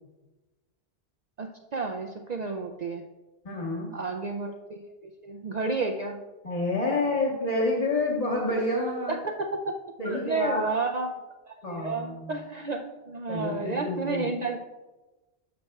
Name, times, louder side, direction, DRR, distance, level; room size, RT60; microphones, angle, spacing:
voice 1, 1.4-3.0 3.9-6.2 9.1-9.7 10.0-11.2 11.5-14.6, right 3 dB, 55° right, 4 dB, 0.5 m, -31 dB
voice 2, 3.4-3.9 6.4-9.1 10.0-10.7 11.6-12.3 13.3-14.3, left 2 dB, 35° left, -4 dB, 1.2 m, -28 dB
10.0 x 6.7 x 2.3 m, 1.1 s
omnidirectional pair, 1.1 m